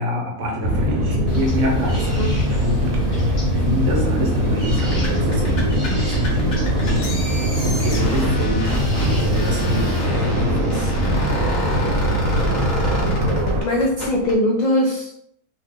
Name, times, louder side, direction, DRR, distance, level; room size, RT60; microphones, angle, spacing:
voice 1, 0.0-7.1 7.6-11.3, left 1 dB, 65° right, -1 dB, 1.1 m, -26 dB
sound 1, 0.6-13.6, equal, 85° right, 1.1 m, -21 dB
voice 2, 1.2-1.5 2.2-2.3 5.9-6.0 13.3-15.2, left 1 dB, 80° left, -3 dB, 0.4 m, -22 dB
sound 2, 1.3-9.3, equal, 25° left, 1.0 m, -32 dB
sound 3, 4.7-14.4, left 1 dB, 50° left, 1.1 m, -29 dB
2.7 x 2.3 x 3.5 m, 0.70 s
omnidirectional pair, 1.4 m